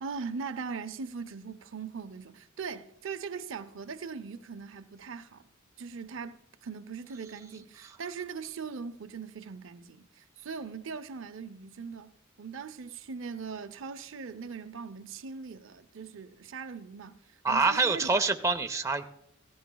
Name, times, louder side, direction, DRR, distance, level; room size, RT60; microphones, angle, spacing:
voice 1, 0.0-5.4 5.8-18.2, right 5 dB, 70° right, 0.6 m, -40 dB
voice 2, 17.4-19.0, right 3 dB, 15° right, 0.5 m, -26 dB
16.5 x 14.0 x 2.2 m
head